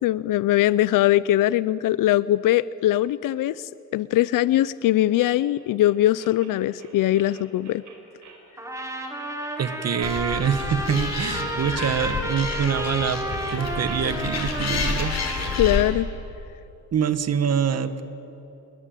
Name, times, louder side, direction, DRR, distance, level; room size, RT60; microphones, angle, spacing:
voice 1, 0.0-7.8 15.6-16.1, left 14 dB, 90° left, 19 dB, 0.5 m, -21 dB
sound 1, 5.2-15.2, right 4 dB, 70° right, 4.3 m, -47 dB
Trumpet, 8.6-15.9, right 1 dB, 10° right, 3.3 m, -32 dB
voice 2, 9.6-13.2 13.5-15.2 16.9-18.0, right 7 dB, 50° right, 12 dB, 1.3 m, -25 dB
Animal, 10.0-15.8, left 4 dB, 55° left, 4.1 m, -30 dB
27.0 x 22.5 x 9.1 m, 3.0 s
cardioid pair, 120°, 32 cm